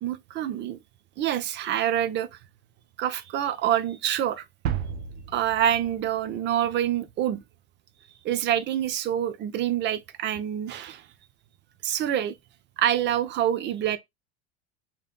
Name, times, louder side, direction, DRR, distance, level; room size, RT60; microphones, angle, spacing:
voice 1, 0.0-0.8 1.2-2.4 3.0-4.4 5.3-7.4 8.2-11.1 11.8-12.4 12.8-14.0, right 11 dB, 35° right, 0.5 m, -26 dB
sound 1, 4.6-6.7, right 9 dB, 75° right, 0.7 m, -33 dB
3.2 x 2.8 x 2.3 m
hypercardioid pair, 90°, 33 cm